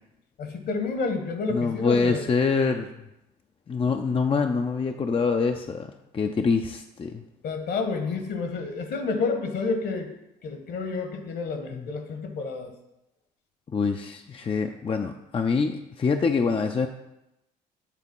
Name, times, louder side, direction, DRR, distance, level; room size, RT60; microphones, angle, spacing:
voice 1, 0.4-2.2 7.4-10.1 10.4-12.7, left 4 dB, 55° left, 6 dB, 1.4 m, -29 dB
voice 2, 1.5-2.9 3.7-5.9 6.1-7.2 11.7-11.9 13.7-16.9, left 5 dB, 25° left, 5 dB, 0.5 m, -25 dB
8.3 x 3.7 x 5.4 m, 0.89 s
hypercardioid pair, 50°, 21 cm